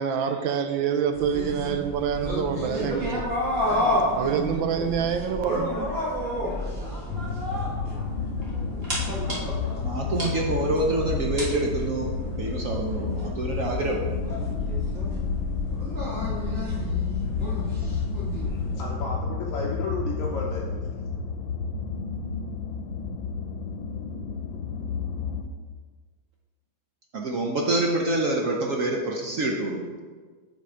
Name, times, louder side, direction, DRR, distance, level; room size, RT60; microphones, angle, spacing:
voice 1, 0.0-3.2 4.1-5.7, right 7 dB, 85° right, 1.4 m, -26 dB
sound 1, 1.1-18.8, equal, 30° right, 1.9 m, -31 dB
sound 2, 7.1-25.4, left 5 dB, 85° left, 1.3 m, -31 dB
voice 2, 9.8-12.1 12.4-14.0 27.1-29.9, right 2 dB, 65° right, 0.8 m, -26 dB
voice 3, 18.5-20.8, left 3 dB, 60° left, 0.9 m, -33 dB
7.5 x 4.3 x 4.9 m
omnidirectional pair, 2.1 m